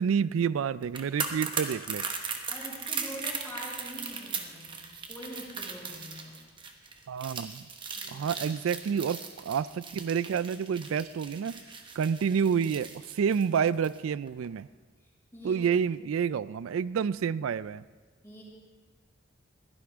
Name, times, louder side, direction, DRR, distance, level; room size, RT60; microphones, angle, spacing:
voice 1, 0.0-2.0 7.1-7.6 8.1-11.6 12.0-14.7 15.4-17.8, right 7 dB, 90° right, 18 dB, 0.4 m, -29 dB
sound 1, 0.8-14.0 14.3-14.4, right 5 dB, 25° right, 1.2 m, -38 dB
voice 2, 2.5-6.4 8.0-8.4 15.0-15.6 18.2-18.4, equal, 15° left, -6 dB, 5.4 m, -44 dB
21.5 x 16.0 x 3.6 m, 1.4 s
head